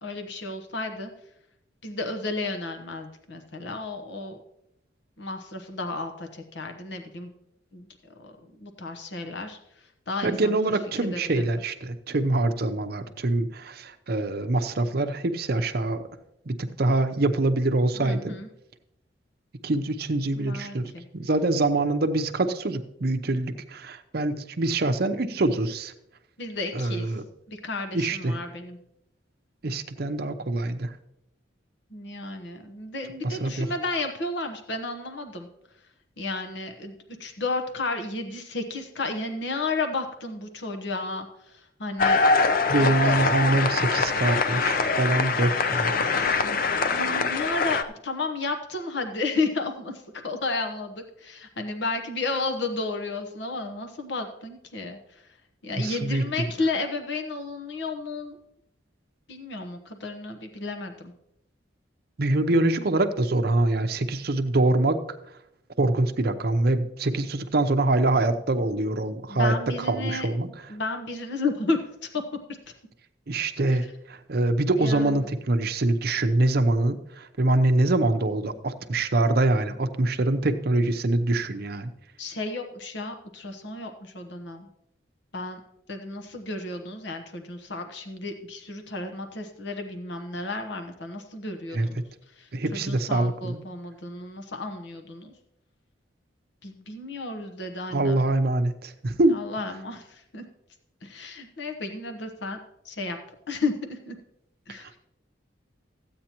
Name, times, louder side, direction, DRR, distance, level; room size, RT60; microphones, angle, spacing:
voice 1, 0.0-1.1 1.8-4.4 5.2-7.3 7.7-7.9 8.2-9.6 10.1-10.5 11.0-11.4 18.0-18.5 20.3-21.0 26.4-27.1 27.5-28.8 31.9-35.5 36.2-36.9 37.2-43.2 46.8-55.3 55.6-58.4 59.3-61.1 69.3-70.3 70.7-71.8 72.1-72.2 73.7-73.8 74.7-75.3 82.2-84.7 85.3-85.6 85.9-92.0 92.4-95.3 96.6-98.2 99.3-100.4 101.0-102.6 102.8-103.2 103.5-104.2 104.7-104.9, left 3 dB, 65° left, 4 dB, 1.0 m, -32 dB
voice 2, 10.2-16.1 16.5-18.3 19.6-25.9 26.7-27.2 27.9-28.4 29.6-30.9 33.2-33.7 42.7-46.4 55.8-56.2 62.2-65.0 65.8-70.5 73.3-81.9 91.7-91.9 92.5-93.6 97.9-99.4 104.7-105.0, right 2 dB, 55° right, 8 dB, 0.7 m, -24 dB
sound 1, 42.0-47.8, left 4 dB, 50° left, 0.5 m, -23 dB
14.5 x 8.6 x 2.9 m, 0.79 s
head